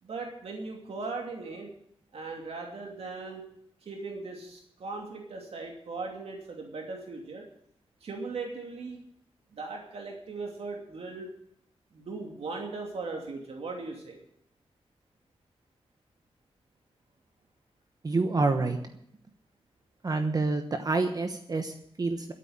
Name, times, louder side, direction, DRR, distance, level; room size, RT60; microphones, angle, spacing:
voice 1, 0.0-1.7 2.1-3.5 3.8-7.5 8.0-9.0 9.5-11.3 11.9-14.2, right 3 dB, 80° right, 1 dB, 2.6 m, -38 dB
voice 2, 18.0-18.8 20.0-22.3, right 3 dB, 40° right, 6 dB, 1.1 m, -28 dB
13.0 x 8.7 x 8.8 m, 0.71 s
wide cardioid pair, 115°, 10 cm